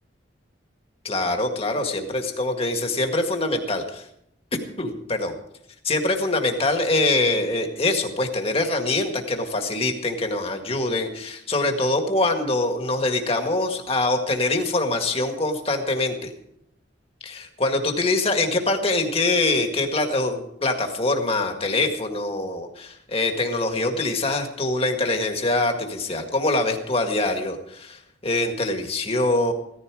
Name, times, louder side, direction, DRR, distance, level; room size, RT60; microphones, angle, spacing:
voice 1, 1.0-4.1 4.8-5.3 5.8-16.3 17.2-29.5, left 2 dB, 30° left, 4 dB, 1.9 m, -24 dB
16.0 x 14.5 x 4.9 m, 0.76 s
head